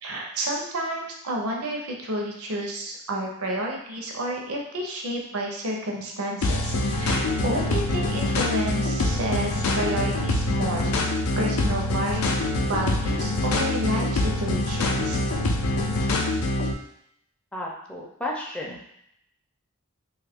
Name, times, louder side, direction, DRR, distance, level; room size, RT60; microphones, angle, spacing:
voice 1, 0.0-10.9 11.4-12.3 12.7-15.2, right 1 dB, 75° right, 0 dB, 0.6 m, -30 dB
sound 1, 6.4-16.7, left 2 dB, 75° left, 0.4 m, -25 dB
voice 2, 17.5-18.8, left 1 dB, 5° left, -2 dB, 0.4 m, -33 dB
3.0 x 2.4 x 3.4 m, 0.75 s
head